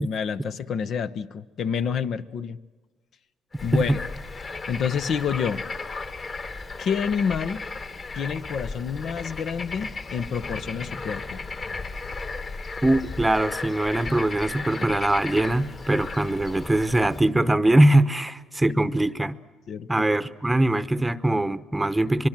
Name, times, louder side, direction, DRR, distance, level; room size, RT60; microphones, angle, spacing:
voice 1, 0.0-2.6 3.6-4.0 4.7-5.7 6.8-7.6 8.1-11.4 19.7-20.1, left 6 dB, 60° left, 11 dB, 0.9 m, -28 dB
Bird / Frog, 3.5-17.3, left 3 dB, 40° left, 2.1 m, -35 dB
voice 2, 12.8-19.4 19.9-22.3, right 1 dB, 10° right, 14 dB, 1.0 m, -22 dB
23.5 x 22.5 x 7.5 m, 1.3 s
cardioid pair, 85°, 0 cm